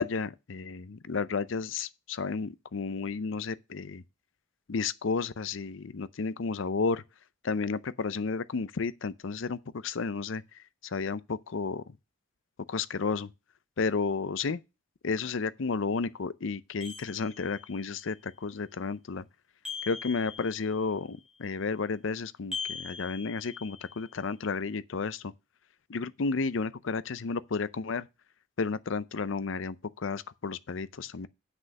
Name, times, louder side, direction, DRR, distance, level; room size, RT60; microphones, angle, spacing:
voice 1, 0.0-4.0 4.7-7.0 7.4-11.8 12.7-13.3 13.8-14.6 15.0-19.2 19.8-25.3 25.9-28.1 28.6-31.3, left 4 dB, 60° left, 0.5 m, -32 dB
sound 1, 16.8-17.8 19.6-20.9 22.5-24.0, left 5 dB, ahead, 3.1 m, -41 dB
7.8 x 6.2 x 5.3 m
head